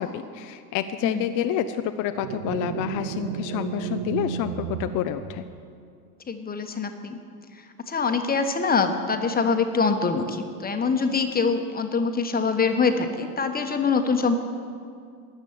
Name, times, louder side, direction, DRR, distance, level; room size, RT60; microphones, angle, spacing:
voice 1, 0.0-5.5, left 10 dB, 40° left, 8 dB, 0.6 m, -28 dB
sound 1, 2.2-5.8, right 10 dB, 60° right, 0.7 m, -33 dB
voice 2, 6.3-7.2 7.6-14.3, left 4 dB, 20° left, 6 dB, 1.1 m, -24 dB
12.5 x 7.2 x 8.8 m, 2.3 s
hypercardioid pair, 90°, 48 cm